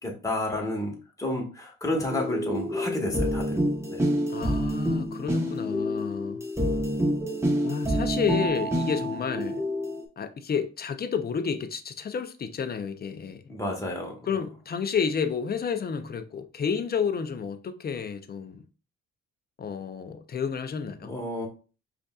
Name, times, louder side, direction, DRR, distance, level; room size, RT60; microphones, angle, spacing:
voice 1, 0.0-3.6 3.9-4.1 13.5-14.4 21.0-21.5, left 1 dB, 10° left, 1.3 m, -31 dB
sound 1, 2.1-10.0, equal, 10° right, 0.9 m, -27 dB
voice 2, 4.3-6.4 7.6-9.6 10.2-13.4 14.3-18.6 19.6-21.2, left 6 dB, 30° left, 0.5 m, -30 dB
5.2 x 2.6 x 2.3 m
cardioid pair, 90°, 30 cm